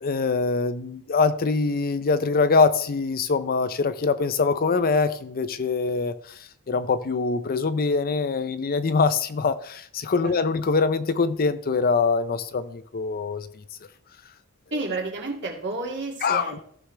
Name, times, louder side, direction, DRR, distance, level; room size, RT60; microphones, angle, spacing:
voice 1, 0.0-13.5 16.2-16.5, left 4 dB, 40° left, 0.5 m, -24 dB
voice 2, 14.7-16.6, right 3 dB, 50° right, 2.3 m, -31 dB
14.5 x 6.3 x 3.3 m
head